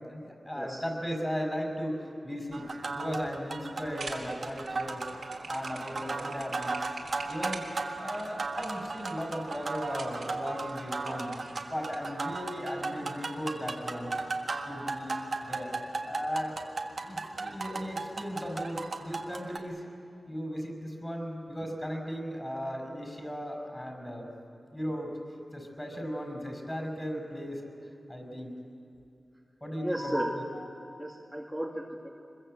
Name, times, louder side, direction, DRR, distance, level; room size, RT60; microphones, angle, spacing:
voice 1, 0.1-2.7 2.9-5.1 5.5-6.7 7.3-7.7 8.0-11.3 11.6-14.1 14.7-15.2 15.5-15.7 16.0-16.6 17.0-19.8 20.3-24.3 24.7-25.2 25.5-27.6 28.1-28.5 29.6-30.3, equal, 15° left, 3 dB, 5.9 m, -36 dB
sound 1, 2.5-19.6, right 3 dB, 65° right, 1.6 m, -36 dB
sound 2, 3.9-12.0, right 4 dB, 85° right, 3.2 m, -45 dB
voice 2, 29.6-30.7 31.0-32.1, right 1 dB, 5° right, -3 dB, 2.3 m, -34 dB
24.5 x 22.0 x 7.9 m, 2.5 s
wide cardioid pair, 65°, 0 cm